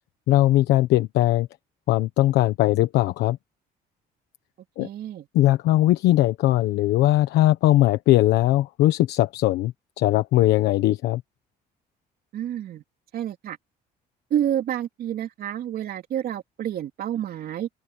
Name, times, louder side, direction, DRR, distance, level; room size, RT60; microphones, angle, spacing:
voice 1, 0.3-1.5 1.9-3.4 4.8-4.9 5.3-11.2, left 15 dB, 85° left, 1.2 m, -20 dB
voice 2, 4.8-5.3 12.3-12.8 13.1-13.6 14.3-17.7, right 10 dB, 60° right, 3.1 m, -29 dB
open air
cardioid pair, 110°, 17 cm